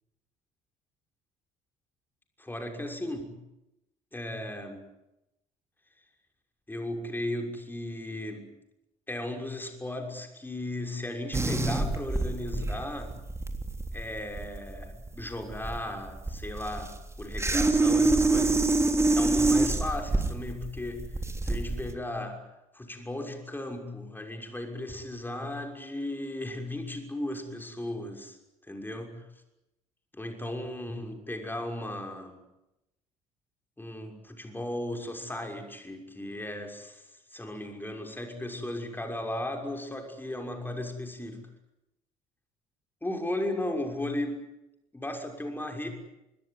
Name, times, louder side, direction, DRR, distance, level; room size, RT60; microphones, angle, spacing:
voice 1, 2.4-3.4 4.1-4.9 6.7-8.5 9.1-13.2 13.9-18.6 19.1-21.1 21.4-22.5 22.7-28.4 28.6-29.3 30.2-32.4 33.8-41.4 43.0-44.4 44.9-45.9, left 1 dB, 10° left, 4 dB, 6.2 m, -36 dB
sound 1, 11.3-21.9, right 2 dB, 15° right, 3.5 m, -26 dB
25.5 x 22.0 x 9.7 m, 0.90 s
hypercardioid pair, 55°, 18 cm